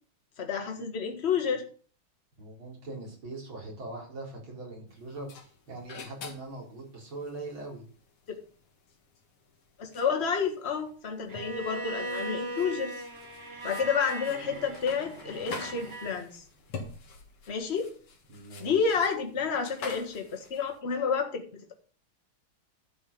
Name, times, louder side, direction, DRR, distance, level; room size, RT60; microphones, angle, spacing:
voice 1, 0.4-1.7 8.3-8.4 9.8-13.0 13.6-16.4 17.5-17.9 18.6-21.7, left 6 dB, 30° left, 3 dB, 1.8 m, -30 dB
voice 2, 2.4-5.3 5.7-7.8 18.3-19.0, right 2 dB, 65° right, -2 dB, 5.1 m, -41 dB
sound 1, 4.9-20.8, left 4 dB, 85° left, 2.7 m, -47 dB
Bowed string instrument, 11.3-16.2, right 1 dB, 30° right, 1.5 m, -38 dB
12.5 x 5.6 x 7.0 m, 0.41 s
omnidirectional pair, 2.4 m